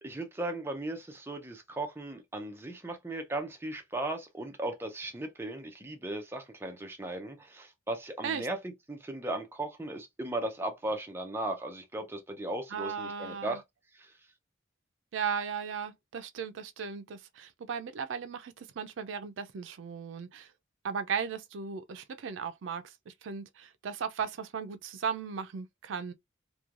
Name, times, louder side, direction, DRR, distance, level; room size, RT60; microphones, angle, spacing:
voice 1, 0.0-13.6 13.9-14.2, right 1 dB, 10° right, 0.5 m, -37 dB
voice 2, 12.7-13.6 15.1-20.5 20.8-26.1, right 6 dB, 75° right, 0.4 m, -36 dB
3.1 x 2.2 x 2.4 m
head